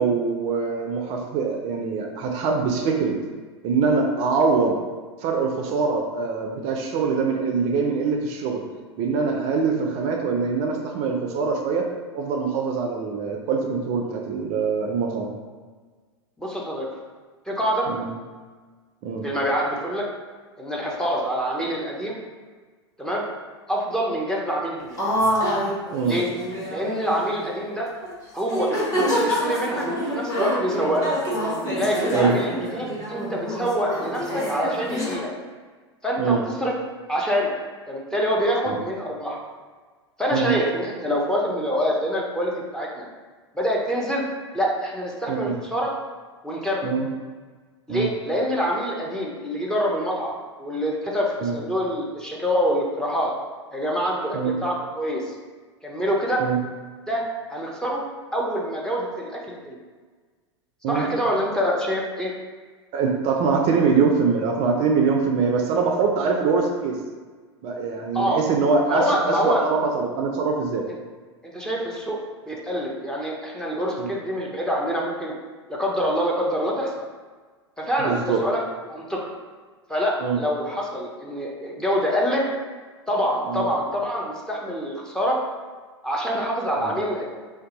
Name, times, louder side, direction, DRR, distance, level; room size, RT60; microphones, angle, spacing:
voice 1, 0.0-3.1 3.6-4.8 5.2-8.6 9.0-11.9 12.1-15.3 17.9-18.1 19.0-19.2 25.9-26.2 32.1-32.4 36.2-36.4 38.7-38.8 40.3-40.5 45.3-45.6 46.8-47.1 47.9-48.1 51.4-51.6 54.3-54.6 56.4-56.6 60.8-61.1 62.9-67.0 67.6-70.8 74.0-74.1 78.0-78.4 80.2-80.4 83.5-83.7 86.8-86.9, right 5 dB, 40° right, 2 dB, 0.4 m, -23 dB
voice 2, 16.4-16.9 17.5-17.9 19.2-20.0 20.6-22.2 23.0-23.2 23.7-25.0 26.0-26.3 26.7-27.9 28.3-31.1 31.7-35.3 36.0-36.7 37.1-37.5 37.9-39.4 40.2-43.1 43.5-44.2 44.5-45.9 46.4-46.9 47.9-53.3 53.7-55.3 55.8-56.4 57.1-58.0 58.3-59.8 60.9-62.3 68.1-68.4 68.9-69.6 71.4-72.2 72.5-75.3 75.7-76.9 77.8-78.6 78.9-79.3 79.9-82.4 83.1-85.4 86.0-87.2, equal, 5° left, -3 dB, 0.6 m, -26 dB
sound 1, 25.0-27.5 28.0-28.2 28.4-35.2, equal, 20° left, 1.1 m, -27 dB
2.6 x 2.2 x 3.9 m, 1.4 s
hypercardioid pair, 100°, 15 cm